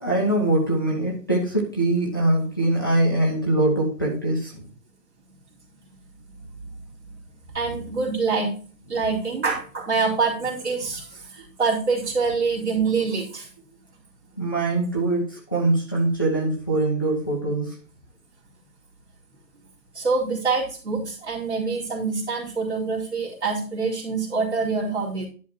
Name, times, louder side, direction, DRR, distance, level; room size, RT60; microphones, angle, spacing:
voice 1, 0.0-4.6 14.4-17.7, right 2 dB, 15° left, -5 dB, 1.0 m, -23 dB
voice 2, 7.5-8.5 8.9-13.5 19.9-25.3, right 4 dB, 40° right, -4 dB, 4.2 m, -25 dB
10.5 x 6.0 x 4.2 m, 0.39 s
figure-of-eight pair, 165°, 50 cm